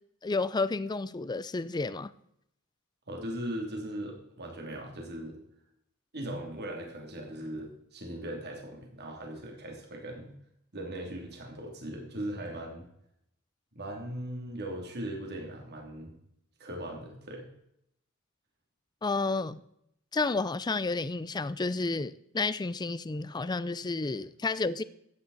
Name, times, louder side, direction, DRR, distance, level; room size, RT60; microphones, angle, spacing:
voice 1, 0.2-2.1 19.0-19.6 20.1-24.8, left 3 dB, 20° left, 0.4 m, -31 dB
voice 2, 3.1-5.4 6.1-10.3 10.7-12.9 13.7-16.1 16.6-17.5, right 1 dB, 50° right, 2.7 m, -39 dB
13.5 x 9.7 x 4.0 m
head